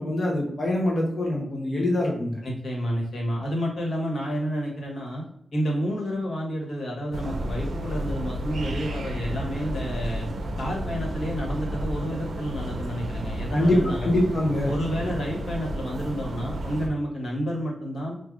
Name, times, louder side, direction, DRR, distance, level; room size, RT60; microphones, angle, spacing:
voice 1, 0.0-2.4 13.5-14.7, left 1 dB, 40° left, -1 dB, 0.7 m, -24 dB
voice 2, 2.4-5.2 5.5-10.3 10.6-14.1 14.6-18.2, equal, 70° left, -2 dB, 1.2 m, -30 dB
sound 1, 7.1-16.9, right 1 dB, 85° right, 0.4 m, -32 dB
4.6 x 2.3 x 2.4 m, 0.74 s
wide cardioid pair, 160°, 0 cm